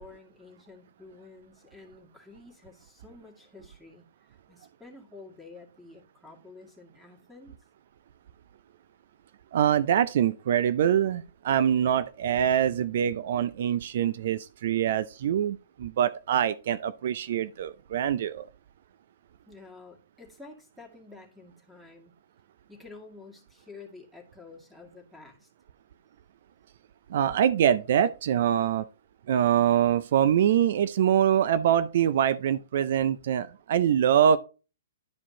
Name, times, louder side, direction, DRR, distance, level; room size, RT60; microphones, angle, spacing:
voice 1, 0.0-7.6 19.5-22.1 22.7-25.5, left 3 dB, ahead, 2.1 m, -50 dB
voice 2, 9.5-18.5 27.1-28.8 29.3-34.4, right 9 dB, 60° right, 0.4 m, -24 dB
11.5 x 4.9 x 2.8 m
hypercardioid pair, 125°, 0 cm